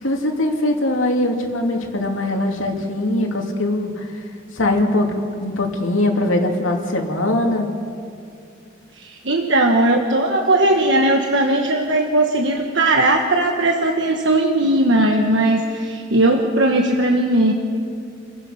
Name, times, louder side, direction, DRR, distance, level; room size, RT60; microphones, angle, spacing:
voice 1, 0.0-4.2 4.5-7.7, left 1 dB, 85° left, 1 dB, 2.8 m, -21 dB
voice 2, 9.0-17.5, right 1 dB, 65° right, 2 dB, 1.3 m, -18 dB
30.0 x 16.0 x 5.8 m, 2.5 s
head